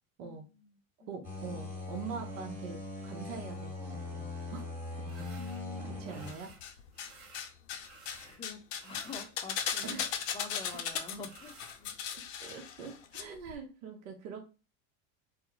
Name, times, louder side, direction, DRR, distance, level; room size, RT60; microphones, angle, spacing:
voice 1, 0.2-0.7 1.0-1.2 5.3-6.1 7.2-7.4 8.2-10.0 10.3-11.9, left 3 dB, 15° left, 4 dB, 0.5 m, -47 dB
voice 2, 1.1-2.8 3.0-4.6 5.0-5.3 6.0-6.5 9.8-10.1 12.4-14.5, right 5 dB, 65° right, 3 dB, 0.7 m, -43 dB
sound 1, 1.2-6.3, left 2 dB, 5° right, 1.1 m, -41 dB
sound 2, 5.1-5.6 6.0-6.6 6.9-8.4 8.7-11.8, right 3 dB, 35° right, 0.8 m, -55 dB
sound 3, 6.3-7.1 7.3-13.2 13.5-13.6, left 8 dB, 70° left, 0.5 m, -37 dB
2.2 x 2.0 x 2.9 m, 0.32 s
hypercardioid pair, 90°, 41 cm